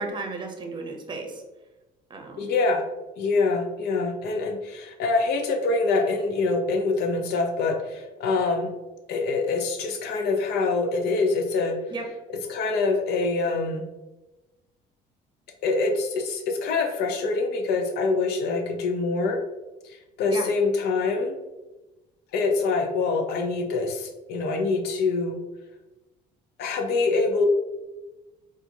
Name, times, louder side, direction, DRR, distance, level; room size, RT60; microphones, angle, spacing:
voice 1, 0.0-1.4 2.1-2.5 11.9-12.0 20.2-20.5, right 3 dB, 30° right, 3 dB, 0.7 m, -34 dB
voice 2, 2.4-2.9 3.2-8.7 9.1-11.8 12.3-13.9 15.6-19.4 19.8-21.3 22.3-25.4 26.6-27.4, left 3 dB, 75° left, 4 dB, 0.6 m, -25 dB
4.2 x 2.4 x 2.8 m, 1.1 s
cardioid pair, 110°, 17 cm